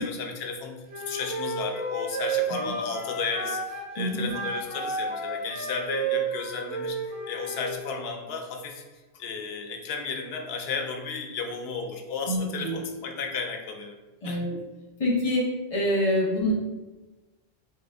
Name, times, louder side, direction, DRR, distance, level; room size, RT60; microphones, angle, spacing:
voice 1, 0.0-8.8 9.1-14.0 14.2-14.4, left 5 dB, 75° left, 3 dB, 0.8 m, -34 dB
Wind instrument woodwind instrument, 0.9-3.9 4.3-7.7, right 3 dB, 75° right, 1.6 m, -31 dB
voice 2, 4.0-4.3 12.3-12.8 14.2-14.5 15.0-15.4 15.7-16.5, left 1 dB, 35° left, -3 dB, 0.9 m, -25 dB
2.9 x 2.5 x 3.4 m, 1.2 s
omnidirectional pair, 1.1 m